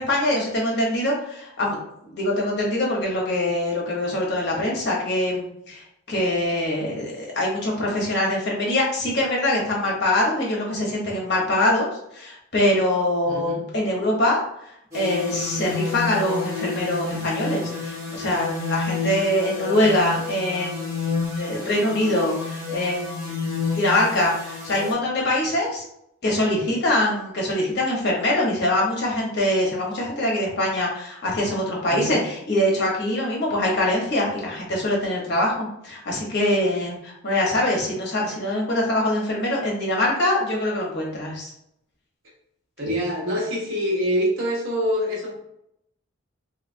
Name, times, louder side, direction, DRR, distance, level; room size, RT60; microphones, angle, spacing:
voice 1, 0.0-1.8 2.0-14.4 14.9-20.8 21.4-23.2 23.7-25.8 26.2-41.5, left 1 dB, 55° left, -3 dB, 1.0 m, -23 dB
voice 2, 13.3-13.6 31.9-32.2 42.8-45.3, equal, 70° right, -3 dB, 1.1 m, -25 dB
sound 1, 14.9-24.9, left 4 dB, 15° right, 1.0 m, -30 dB
3.2 x 2.8 x 2.6 m, 0.77 s
head